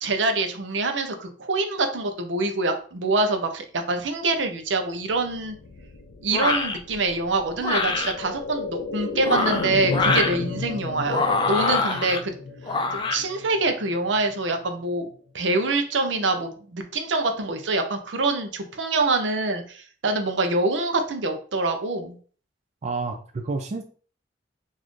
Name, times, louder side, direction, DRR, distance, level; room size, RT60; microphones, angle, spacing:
voice 1, 0.0-5.5 6.2-12.3 12.9-15.1 15.3-22.2, right 2 dB, 75° right, 6 dB, 0.6 m, -25 dB
sound 1, 5.0-14.8 15.1-15.2, left 3 dB, 85° left, 0.4 m, -34 dB
sound 2, 6.3-6.8 7.6-8.1 9.1-10.4 11.1-12.2 12.7-13.2, left 3 dB, 25° left, 0.4 m, -24 dB
voice 2, 22.8-23.8, right 3 dB, 40° right, 4 dB, 0.4 m, -29 dB
4.0 x 2.6 x 3.1 m, 0.43 s
head